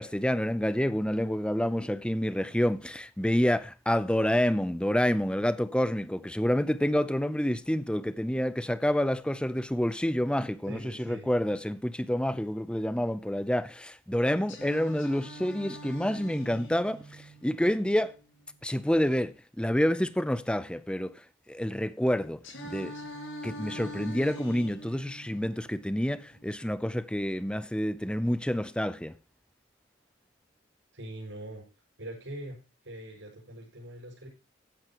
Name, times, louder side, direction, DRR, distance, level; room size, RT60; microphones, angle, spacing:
voice 1, 0.0-18.1 18.6-21.1 21.5-22.4 22.6-22.9 23.4-29.1, equal, 5° left, 0.5 m, -28 dB
voice 2, 10.6-11.3 30.9-31.7 32.0-32.6 32.8-34.3, right 1 dB, 80° right, 6.3 m, -42 dB
Singing, 14.5-18.5 22.4-26.5, equal, 85° left, 5.9 m, -44 dB
14.0 x 10.5 x 3.0 m
head